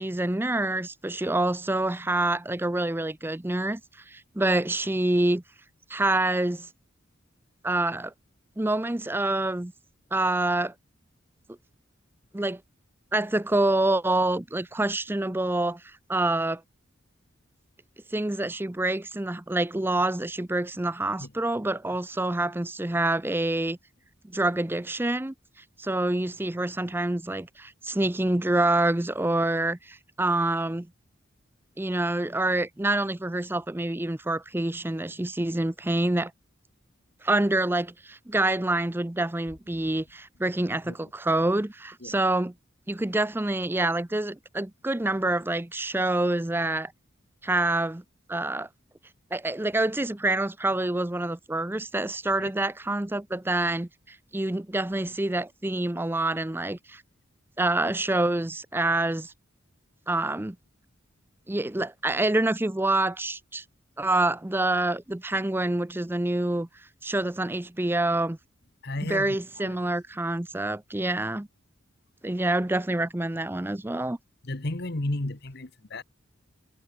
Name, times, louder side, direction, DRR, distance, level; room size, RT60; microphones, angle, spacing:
voice 1, 0.0-3.8 4.1-5.4 5.9-6.7 7.6-8.1 8.6-9.7 10.1-10.7 12.3-12.6 13.1-16.6 18.1-23.8 24.2-25.3 25.8-30.9 31.8-36.3 37.2-42.5 42.9-46.9 47.4-48.0 48.3-48.7 49.3-57.0 57.6-59.3 60.1-60.6 61.5-63.6 64.0-66.7 67.0-68.4 69.0-71.5 72.2-74.2, right 2 dB, 10° right, 0.5 m, -27 dB
voice 2, 68.8-69.8 74.4-76.0, left 2 dB, 55° left, 1.5 m, -33 dB
head